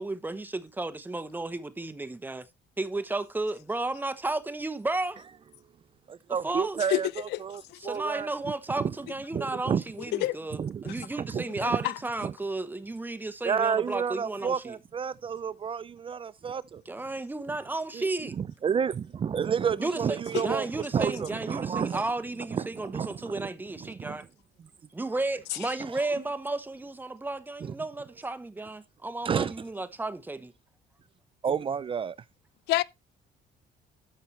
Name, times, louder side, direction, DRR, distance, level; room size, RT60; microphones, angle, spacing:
voice 1, 0.0-2.5 2.8-5.2 6.4-6.8 7.8-14.8 16.9-18.4 19.8-24.3 24.9-30.5, right 2 dB, 10° right, 0.9 m, -33 dB
voice 2, 6.1-8.3 8.8-8.9 9.3-9.8 10.6-11.4 12.2-12.3 13.4-16.8 17.9-18.1 18.4-22.0 22.5-23.5 23.8-24.2 25.9-26.0 27.6-27.7 29.2-29.5 31.4-32.2, right 7 dB, 30° right, 0.4 m, -30 dB
voice 3, 11.6-11.9 20.3-20.4 32.7-32.8, left 18 dB, 80° left, 0.5 m, -27 dB
13.0 x 5.5 x 3.2 m
cardioid pair, 110°, 17 cm